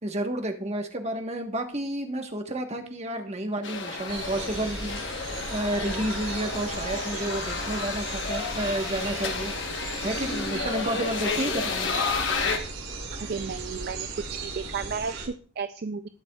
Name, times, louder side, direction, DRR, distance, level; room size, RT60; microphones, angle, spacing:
voice 1, 0.0-5.0 5.5-9.5 10.0-11.9, right 1 dB, 30° right, 4 dB, 1.2 m, -31 dB
sound 1, 3.6-12.6, left 4 dB, 60° left, 1.1 m, -31 dB
sound 2, 4.1-15.3, right 3 dB, 70° right, 6.0 m, -37 dB
voice 2, 13.3-16.1, right 5 dB, 50° right, 10 dB, 0.4 m, -33 dB
19.5 x 6.8 x 2.4 m, 0.44 s
head